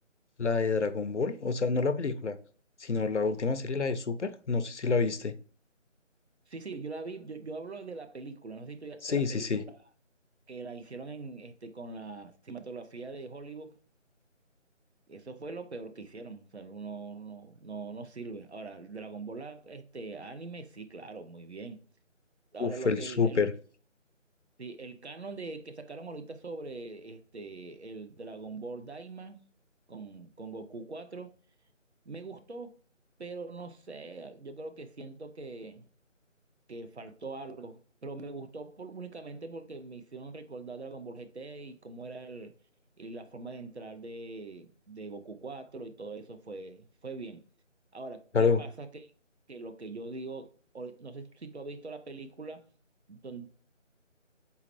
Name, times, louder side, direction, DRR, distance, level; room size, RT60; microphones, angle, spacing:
voice 1, 0.4-2.4 2.8-5.4 9.0-9.6 22.6-23.5 48.3-48.6, left 4 dB, 65° left, 0.5 m, -28 dB
voice 2, 6.5-9.8 10.5-13.8 15.1-21.8 22.5-23.4 24.6-29.4 29.9-31.3 32.1-32.8 33.2-35.9 36.7-42.5 43.0-47.4 47.9-49.1 49.5-52.7 53.1-53.5, right 3 dB, 60° right, 0.7 m, -42 dB
4.2 x 3.9 x 2.9 m
figure-of-eight pair, 160°, 38 cm